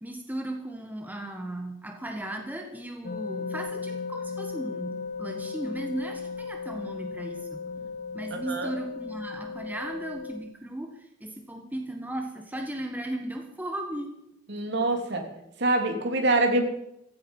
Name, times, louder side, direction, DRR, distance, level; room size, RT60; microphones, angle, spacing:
voice 1, 0.0-7.6 8.1-14.1, right 1 dB, 10° right, 4 dB, 1.5 m, -36 dB
sound 1, 3.0-10.4, left 5 dB, 50° left, 1.9 m, -36 dB
voice 2, 8.3-8.7 14.5-15.3 15.6-16.6, right 2 dB, 60° right, 4 dB, 3.2 m, -25 dB
16.0 x 15.5 x 5.6 m, 0.83 s
head